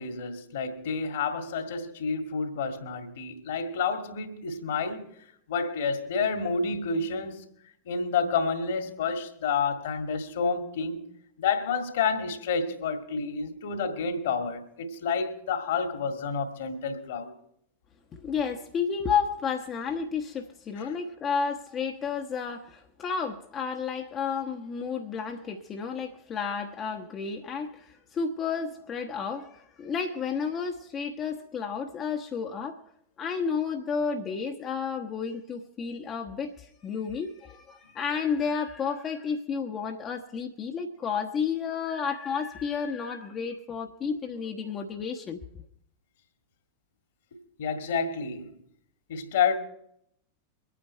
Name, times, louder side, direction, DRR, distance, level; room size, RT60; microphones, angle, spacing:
voice 1, 0.0-5.0 5.5-7.5 7.9-11.0 11.4-17.3 20.8-20.9 47.6-48.5 49.1-49.6, left 5 dB, 60° left, 2.0 m, -29 dB
voice 2, 18.1-32.8 33.2-45.4, left 6 dB, 25° left, 1.1 m, -31 dB
23.5 x 9.3 x 4.5 m
figure-of-eight pair, 90°, 0 cm